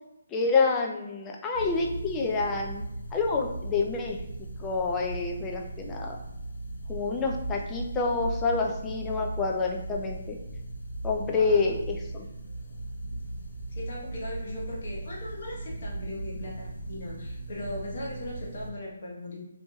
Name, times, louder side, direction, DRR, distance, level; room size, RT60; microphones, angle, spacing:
voice 1, 0.3-2.8 3.1-4.2 4.6-6.2 6.9-10.4 11.0-12.3, left 4 dB, 15° left, 1 dB, 0.3 m, -28 dB
sound 1, 1.5-18.7, right 2 dB, 80° left, 0.7 m, -38 dB
voice 2, 11.3-11.7 13.7-19.4, left 1 dB, 55° left, -4 dB, 0.9 m, -39 dB
2.9 x 2.7 x 2.2 m, 0.86 s
hypercardioid pair, 160°, 0 cm